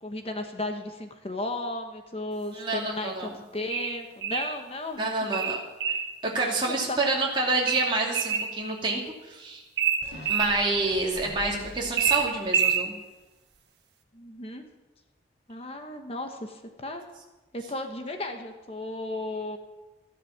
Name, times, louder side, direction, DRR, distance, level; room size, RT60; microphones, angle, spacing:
voice 1, 0.0-5.1 5.9-6.0 6.6-7.2 14.1-14.6 15.5-17.0 17.5-19.6, left 2 dB, 30° left, 5 dB, 1.2 m, -35 dB
voice 2, 2.5-3.3 5.0-5.6 6.2-9.0 9.3-9.6 10.3-12.9, right 2 dB, 25° right, -2 dB, 2.5 m, -28 dB
sound 1, 3.7-4.5 5.3-6.1 7.7-8.5 9.8-10.5 12.0-12.9, right 7 dB, 65° right, 1.4 m, -26 dB
sound 2, 10.0-12.7 13.2-13.3, left 1 dB, 75° left, 4.7 m, -43 dB
13.5 x 11.5 x 7.2 m, 1.1 s
head